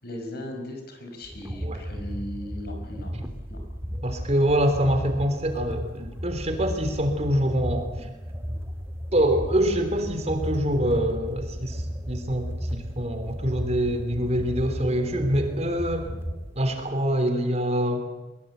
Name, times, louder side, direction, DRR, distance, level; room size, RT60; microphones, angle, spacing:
voice 1, 0.0-3.1 3.5-3.6, left 1 dB, 60° left, 5 dB, 5.4 m, -37 dB
sound 1, 1.2-16.9, equal, 15° right, 2.2 m, -34 dB
voice 2, 4.0-8.1 9.1-16.1 16.6-18.0, equal, 40° right, 7 dB, 3.5 m, -25 dB
22.5 x 22.5 x 8.2 m, 1.0 s
head